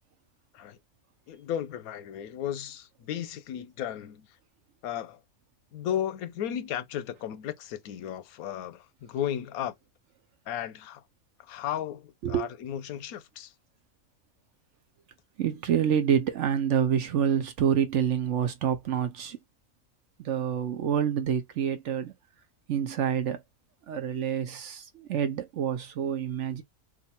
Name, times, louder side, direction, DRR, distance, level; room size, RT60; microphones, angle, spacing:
voice 1, 1.3-4.3 4.8-5.2 5.7-9.7 10.5-11.0 11.5-13.5, left 10 dB, 90° left, 1.1 m, -34 dB
voice 2, 15.4-19.4 20.2-22.1 22.7-23.4 23.9-26.6, right 8 dB, 65° right, 0.9 m, -27 dB
2.6 x 2.5 x 4.2 m
omnidirectional pair, 1.5 m